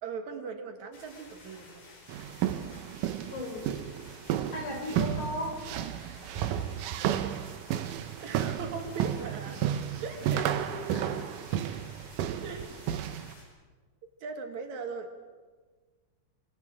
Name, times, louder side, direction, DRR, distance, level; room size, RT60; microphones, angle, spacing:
voice 1, 0.0-1.8 8.2-9.6 10.0-10.5 12.4-12.7 14.2-15.1, right 5 dB, 65° right, 6 dB, 2.7 m, -39 dB
sound 1, 0.9-13.4, left 2 dB, 85° left, 6.1 m, -52 dB
sound 2, 2.1-13.3, right 10 dB, 85° right, 2.4 m, -32 dB
voice 2, 3.3-3.8 4.5-5.7 10.2-11.2, left 1 dB, 70° left, 1 dB, 5.9 m, -37 dB
26.0 x 24.5 x 4.9 m, 1.4 s
omnidirectional pair, 3.6 m